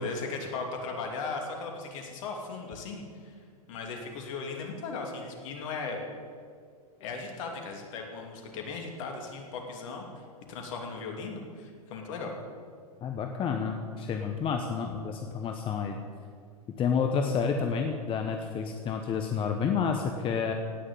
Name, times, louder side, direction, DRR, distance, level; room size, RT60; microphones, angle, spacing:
voice 1, 0.0-3.3 3.7-6.0 7.0-10.2 10.5-12.3, left 4 dB, 55° left, 2 dB, 2.9 m, -37 dB
voice 2, 13.0-16.0 16.8-20.5, left 6 dB, 25° left, 4 dB, 1.1 m, -29 dB
17.5 x 6.4 x 9.1 m, 2.1 s
hypercardioid pair, 105°, 20 cm